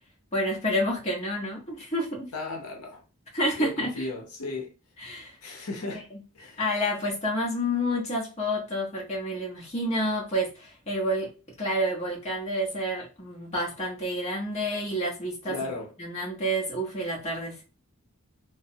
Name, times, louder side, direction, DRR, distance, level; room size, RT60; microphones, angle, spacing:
voice 1, 0.3-2.3 3.3-4.1 5.0-5.4 5.9-6.2 6.6-11.3 11.6-15.6 16.0-17.6, equal, 30° left, 0.9 m, -29 dB
voice 2, 2.3-3.0 3.6-4.7 5.4-6.1 6.3-6.6 15.5-15.9, left 2 dB, 80° left, 0.7 m, -35 dB
3.2 x 2.0 x 2.7 m
head